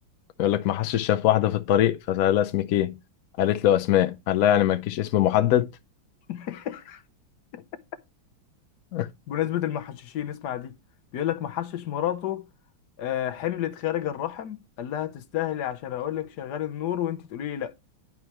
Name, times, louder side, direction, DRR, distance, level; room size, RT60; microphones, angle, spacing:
voice 1, 0.4-3.0 3.4-5.7 8.9-9.1, left 12 dB, 80° left, 0.8 m, -22 dB
voice 2, 6.3-7.0 7.5-7.6 9.3-10.7 11.1-12.4 13.0-17.7, left 11 dB, 65° left, 1.2 m, -30 dB
11.0 x 4.7 x 3.0 m
omnidirectional pair, 2.2 m